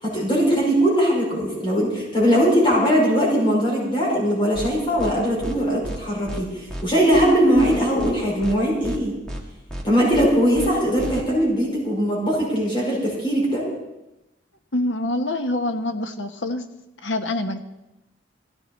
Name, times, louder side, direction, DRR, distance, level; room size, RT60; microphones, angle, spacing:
voice 1, 0.0-9.1 9.8-13.7, equal, 30° left, -4 dB, 5.6 m, -20 dB
sound 1, 4.5-4.7 5.0-5.1 5.4-5.6 5.8-6.0 6.3-6.4 6.7-6.8 7.1-7.3 7.5-8.1 8.4-8.6 8.8-9.0 9.3-9.4 9.7-9.8 10.1-10.3 10.5-10.7 11.0-11.2, equal, 5° left, 2.0 m, -32 dB
voice 2, 14.7-16.6 17.0-17.6, left 1 dB, 75° left, 7 dB, 1.2 m, -25 dB
16.0 x 15.0 x 4.4 m, 0.95 s
head